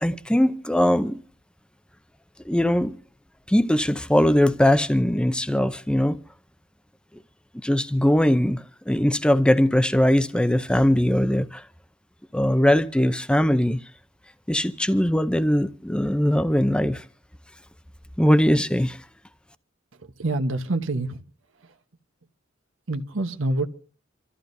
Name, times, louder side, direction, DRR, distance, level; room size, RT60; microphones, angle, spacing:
voice 1, 0.0-1.2 2.4-2.9 3.5-6.2 7.6-11.6 12.3-13.8 14.5-17.0 18.2-19.0, left 1 dB, 5° left, 0.6 m, -21 dB
voice 2, 19.9-21.3 21.6-21.7 22.9-23.7, right 2 dB, 85° right, 1.1 m, -27 dB
27.5 x 14.0 x 2.7 m
head